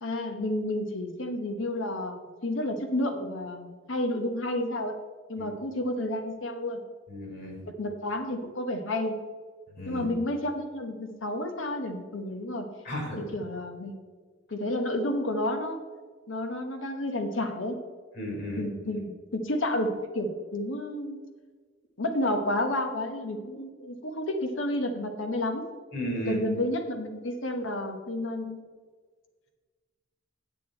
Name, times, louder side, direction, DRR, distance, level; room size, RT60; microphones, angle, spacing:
voice 1, 0.0-4.9 5.3-6.8 7.8-9.1 9.9-12.7 13.3-13.9 14.5-15.8 16.3-17.8 18.6-19.1 19.3-19.9 20.1-21.2 22.0-25.6 26.3-28.6, left 1 dB, 80° left, 5 dB, 1.0 m, -30 dB
voice 2, 7.1-7.6 9.7-10.1 12.8-13.2 18.1-18.7 25.9-26.4, equal, 55° left, -1 dB, 3.3 m, -34 dB
8.8 x 8.3 x 4.4 m, 1.5 s
head